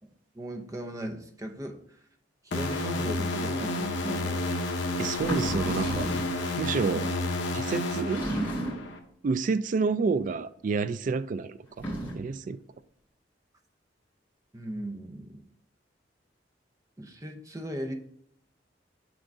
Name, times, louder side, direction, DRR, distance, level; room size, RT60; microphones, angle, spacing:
voice 1, 0.3-2.0 2.4-4.5 6.9-7.1 14.5-15.4 17.0-17.9, right 1 dB, 20° right, 0.7 m, -37 dB
sound 1, 2.5-9.0, left 2 dB, 85° left, 0.8 m, -30 dB
voice 2, 5.0-6.1 6.6-7.0 7.5-8.3 9.2-11.9 12.1-12.6, right 4 dB, 45° right, 0.3 m, -29 dB
sound 2, 5.1-6.4 8.1-9.0 11.7-12.3, right 1 dB, 10° left, 2.2 m, -33 dB
6.1 x 3.7 x 5.3 m
head